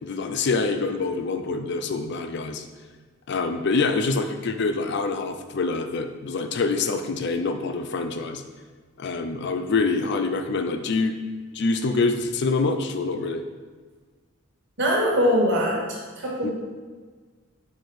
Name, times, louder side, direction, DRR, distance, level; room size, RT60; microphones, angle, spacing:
voice 1, 0.0-2.7 3.3-8.4 9.0-11.1 11.5-13.4 16.4-16.5, left 3 dB, 55° left, 7 dB, 0.4 m, -25 dB
voice 2, 14.8-16.5, equal, 60° right, -3 dB, 1.6 m, -22 dB
4.8 x 4.4 x 4.7 m, 1.5 s
head